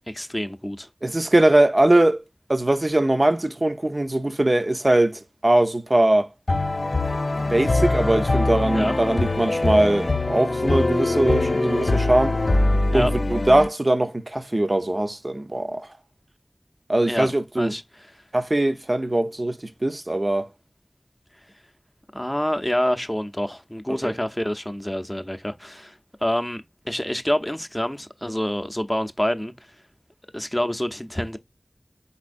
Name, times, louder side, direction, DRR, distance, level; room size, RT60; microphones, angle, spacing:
voice 1, 0.0-0.9 8.7-8.9 12.9-13.1 17.1-17.8 22.1-29.5 30.3-31.4, equal, 15° left, 0.6 m, -27 dB
voice 2, 1.0-2.2 2.5-6.3 7.3-12.3 12.9-15.9 16.9-17.8 18.3-20.5 24.0-24.1, right 1 dB, 45° right, 0.6 m, -21 dB
sound 1, 6.5-13.7, left 2 dB, 75° left, 0.5 m, -23 dB
4.4 x 4.2 x 2.5 m
wide cardioid pair, 50°, 0 cm